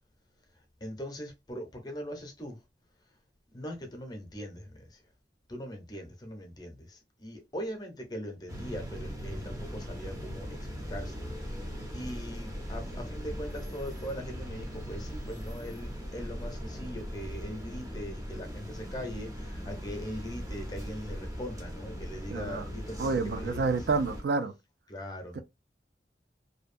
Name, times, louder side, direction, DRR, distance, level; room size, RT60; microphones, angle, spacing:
voice 1, 0.8-2.6 3.5-5.0 5.5-11.2 11.6-23.6 24.9-25.4, equal, 25° left, 0.6 m, -41 dB
sound 1, 8.5-24.2, equal, 20° right, 0.6 m, -39 dB
voice 2, 22.3-22.6 23.0-24.5 25.3-25.4, right 4 dB, 65° right, 0.3 m, -29 dB
2.6 x 2.2 x 2.4 m
head